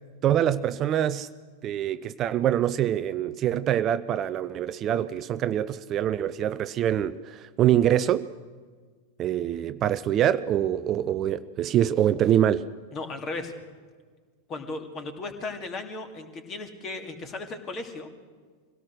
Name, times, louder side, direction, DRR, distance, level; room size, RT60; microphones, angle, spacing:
voice 1, 0.2-1.3 1.6-8.3 9.2-12.7, right 11 dB, 30° right, 14 dB, 0.5 m, -25 dB
voice 2, 12.9-13.5 14.5-18.1, left 3 dB, 30° left, 6 dB, 2.5 m, -36 dB
24.0 x 17.5 x 6.5 m, 1.5 s
figure-of-eight pair, 90°, 0 cm